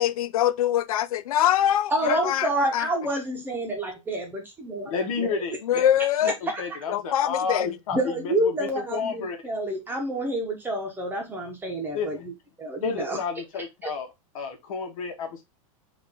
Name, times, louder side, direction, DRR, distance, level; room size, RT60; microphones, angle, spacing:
voice 1, 0.0-2.9 5.6-6.3 6.9-7.7, left 11 dB, 90° left, 0.4 m, -24 dB
voice 2, 1.9-5.4 6.5-6.6 7.9-12.3 12.6-13.2, right 1 dB, 10° right, 1.0 m, -28 dB
voice 3, 4.8-5.9 6.2-9.4 11.9-12.2 12.8-14.1 14.3-15.4, left 5 dB, 70° left, 1.3 m, -31 dB
3.7 x 2.6 x 3.6 m
supercardioid pair, 145°, 18 cm